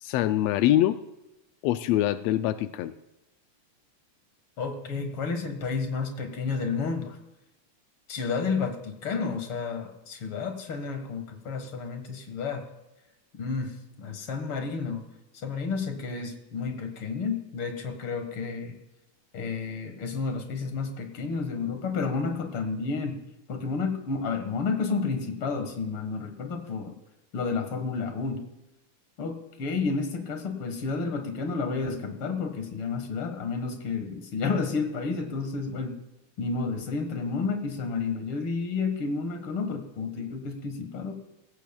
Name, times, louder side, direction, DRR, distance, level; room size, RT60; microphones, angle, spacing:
voice 1, 0.0-1.0 1.6-2.9, left 13 dB, 90° left, 11 dB, 1.4 m, -24 dB
voice 2, 4.6-7.2 8.1-12.6 13.3-15.0 15.4-18.7 19.3-23.2 23.5-26.9 27.3-28.4 29.2-35.9 36.4-41.1, left 4 dB, 50° left, 6 dB, 2.1 m, -31 dB
17.5 x 15.0 x 2.3 m, 0.95 s
omnidirectional pair, 3.4 m